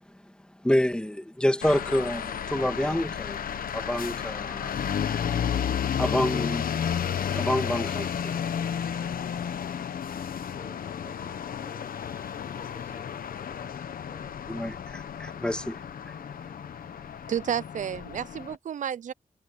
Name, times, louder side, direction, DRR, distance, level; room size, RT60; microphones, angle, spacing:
voice 1, 0.6-4.7 6.0-6.7 7.3-8.4 14.5-16.2, left 1 dB, 5° left, 2.2 m, -28 dB
sound 1, 1.6-18.6, left 8 dB, 80° left, 1.0 m, -32 dB
voice 2, 9.9-14.5, right 2 dB, 15° right, 7.7 m, -54 dB
voice 3, 17.3-19.1, right 9 dB, 60° right, 0.5 m, -31 dB
wide cardioid pair, 140°, 15 cm